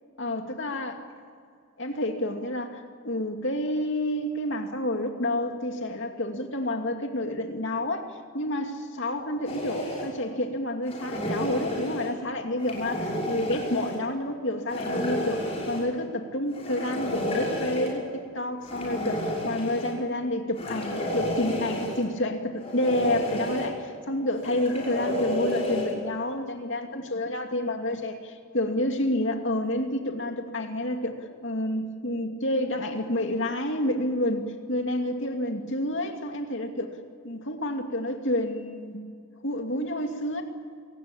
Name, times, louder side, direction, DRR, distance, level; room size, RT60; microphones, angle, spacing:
voice 1, 0.2-0.9 1.8-31.2 31.4-37.0 37.2-39.0 39.4-40.4, left 1 dB, 55° left, 4 dB, 2.6 m, -29 dB
sound 1, 9.5-10.1 10.9-12.1 12.6-14.0 14.7-15.9 16.5-17.9 18.6-19.9 20.6-22.0 22.6-23.7 24.4-25.9, left 1 dB, 30° left, 5.8 m, -31 dB
27.0 x 18.0 x 8.7 m, 2.2 s
head